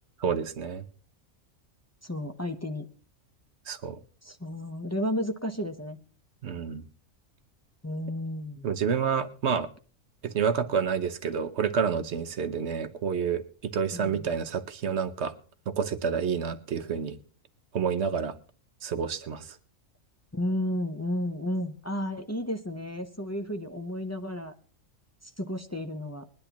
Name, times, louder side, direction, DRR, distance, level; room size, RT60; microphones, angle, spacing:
voice 1, 0.2-0.8 3.7-4.0 6.4-6.8 8.6-9.7 10.2-15.3 15.7-17.1 17.7-18.3 18.8-19.4, right 6 dB, 60° right, 11 dB, 1.0 m, -29 dB
voice 2, 2.0-2.9 4.2-6.0 7.8-8.7 13.9-14.3 20.3-24.5 25.4-26.3, left 1 dB, 15° left, 4 dB, 0.6 m, -32 dB
21.0 x 10.5 x 3.0 m, 0.41 s
omnidirectional pair, 1.4 m